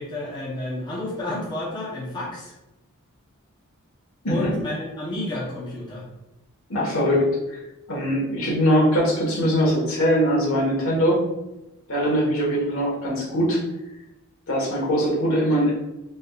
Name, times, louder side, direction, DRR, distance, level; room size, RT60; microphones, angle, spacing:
voice 1, 0.0-2.5 4.3-6.1, left 1 dB, 20° left, -7 dB, 0.8 m, -31 dB
voice 2, 4.2-4.6 6.7-7.6 7.9-11.2 11.9-13.6 14.5-15.7, equal, 70° left, -4 dB, 1.3 m, -21 dB
4.0 x 3.4 x 2.4 m, 0.94 s
head